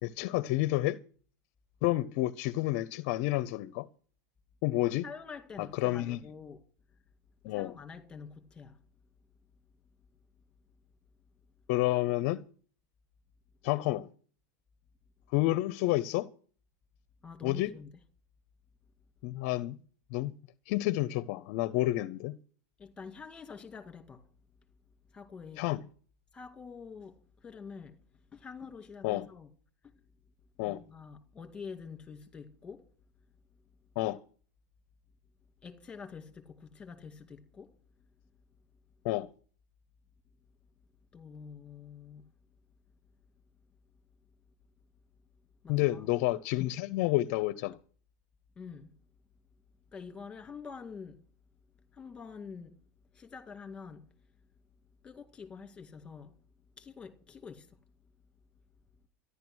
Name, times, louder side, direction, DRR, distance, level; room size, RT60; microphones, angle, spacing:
voice 1, 0.0-1.0 1.8-3.9 4.6-5.0 5.6-6.2 7.4-7.7 11.7-12.4 13.6-14.1 15.3-16.3 17.4-17.7 19.2-19.8 20.1-20.3 20.7-22.4 25.6-25.8 29.0-29.3 30.6-30.8 34.0-34.2 39.0-39.3 45.7-47.8, left 17 dB, 50° left, 0.6 m, -29 dB
voice 2, 5.0-6.6 7.5-8.8 17.2-17.9 22.8-24.3 25.1-25.6 26.3-28.0 28.3-29.5 29.8-30.0 30.6-32.9 35.6-37.7 41.1-42.2 45.6-46.1 48.6-48.9 49.9-51.2 51.9-52.8 53.1-54.1 55.0-56.4 56.8-57.8, left 5 dB, 10° left, 2.2 m, -46 dB
14.0 x 11.5 x 6.2 m
supercardioid pair, 160°, 8 cm